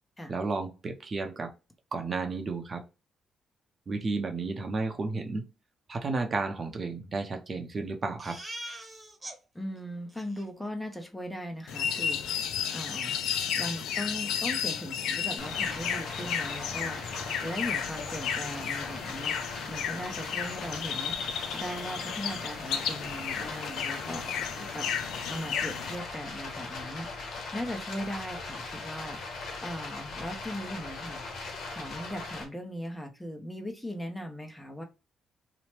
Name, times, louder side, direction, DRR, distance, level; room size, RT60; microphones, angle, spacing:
voice 1, 0.3-1.5 1.9-2.8 3.9-5.4 5.9-8.4, right 3 dB, 40° right, 0.6 m, -32 dB
Crying sobbing, 8.2-9.4 9.8-9.9 10.1-10.5 12.3-12.4 12.9-13.7 14.0-14.2 14.5-14.6 15.0-15.6, right 1 dB, 20° right, 1.0 m, -45 dB
voice 2, 9.5-13.2 13.6-27.3 27.5-31.2 31.7-34.8, equal, 10° left, 0.6 m, -39 dB
sound 1, 11.7-26.0, left 8 dB, 85° left, 0.3 m, -33 dB
Stream, 15.4-32.4, left 3 dB, 70° left, 0.9 m, -39 dB
2.9 x 2.0 x 3.0 m
cardioid pair, 90°, 0 cm